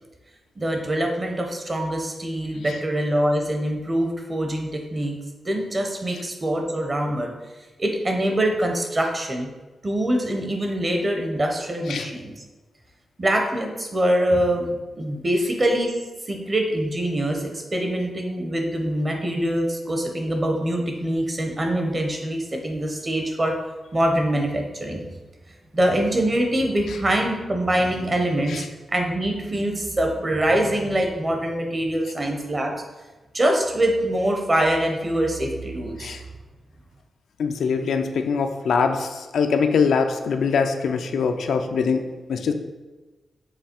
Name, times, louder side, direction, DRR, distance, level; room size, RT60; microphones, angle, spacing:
voice 1, 0.6-5.2 5.4-7.3 7.8-9.5 9.8-12.4 13.2-15.9 16.3-23.6 23.9-25.0 25.7-32.7 33.3-36.2, right 1 dB, 25° right, 3 dB, 0.8 m, -24 dB
voice 2, 37.4-42.5, left 5 dB, 85° left, 6 dB, 0.4 m, -23 dB
6.7 x 3.2 x 4.4 m, 1.2 s
wide cardioid pair, 160°, 0 cm